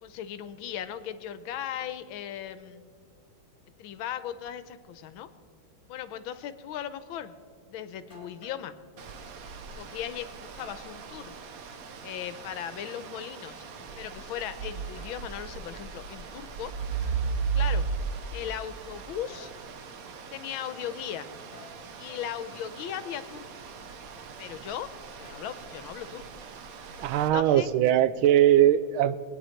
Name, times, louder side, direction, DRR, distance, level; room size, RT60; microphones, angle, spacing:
voice 1, 0.0-2.9 3.8-5.3 5.9-7.3 7.7-8.7 9.8-11.3 12.0-13.6 14.0-16.7 17.5-17.9 18.3-19.5 20.3-21.3 22.0-23.5 24.4-24.9 25.2-26.2 27.2-27.7, left 10 dB, 80° left, 12 dB, 1.5 m, -37 dB
sound 1, 8.1-8.7 10.6-11.1 12.7-14.2 14.7-15.3 17.0-17.2 19.3-19.6 21.5-21.8 25.2-25.8, left 1 dB, 25° left, 2.9 m, -53 dB
sound 2, 9.0-27.3, right 5 dB, 60° right, 1.0 m, -37 dB
voice 2, 27.0-29.2, right 12 dB, 90° right, 14 dB, 1.4 m, -21 dB
20.5 x 9.8 x 4.5 m, 2.2 s
omnidirectional pair, 2.2 m